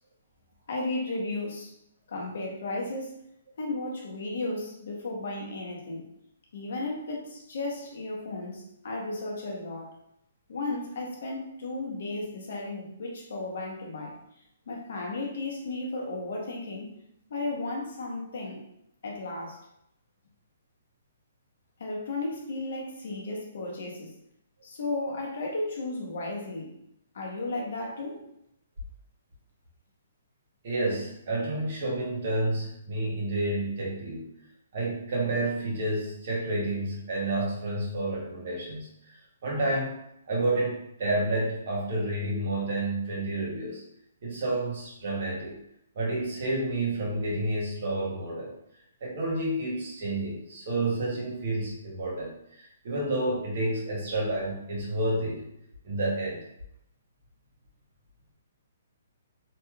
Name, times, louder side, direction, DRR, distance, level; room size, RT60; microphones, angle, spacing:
voice 1, 0.7-1.7 2.1-3.2 3.6-6.1 6.5-9.9 10.5-14.2 14.7-16.9 17.3-18.6 19.0-19.6 21.8-24.1 24.6-26.8 27.1-28.2, left 2 dB, 55° left, -1 dB, 0.8 m, -34 dB
voice 2, 30.6-34.3 34.7-40.0 40.3-43.8 44.2-45.6 45.9-48.5 49.0-55.4 55.8-56.4, right 2 dB, 40° right, -4 dB, 1.0 m, -30 dB
3.1 x 2.8 x 2.3 m, 0.78 s
hypercardioid pair, 175°, 0 cm